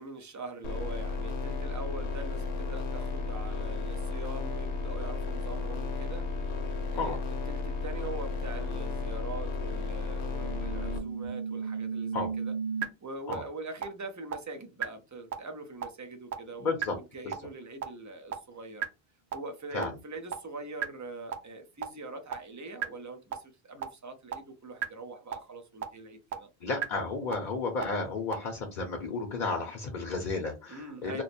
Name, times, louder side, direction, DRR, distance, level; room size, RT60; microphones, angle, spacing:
voice 1, 0.0-6.3 6.9-7.2 7.5-12.5 13.0-18.9 19.3-26.5 30.7-31.2, right 2 dB, 25° right, 0.4 m, -43 dB
sound 1, 0.6-11.0, left 3 dB, 90° left, 0.9 m, -33 dB
sound 2, 10.4-12.8 13.3-13.4 13.8-13.9 14.3-14.4 14.8-14.9 15.3-15.4 15.8-15.9 16.3-16.4 16.8-16.9 17.3-17.4 17.8-17.9 18.3-18.4 18.8-18.9 19.3-19.4 19.8-19.9 20.3-20.4 20.8-20.9 21.3-21.4 21.8-21.9 22.3-22.4 22.8-22.9 23.3-23.4 23.8-23.9 24.3-24.4 24.8-24.9 25.3-25.4 25.8-25.9 26.3-26.4 26.8-26.9 27.3-27.4 27.8-27.9 28.3-28.4, right 7 dB, 75° right, 1.0 m, -32 dB
voice 2, 16.6-16.9 17.2-17.3 19.7-19.9 26.6-31.2, left 3 dB, 50° left, 0.9 m, -32 dB
3.0 x 2.1 x 4.1 m
omnidirectional pair, 1.1 m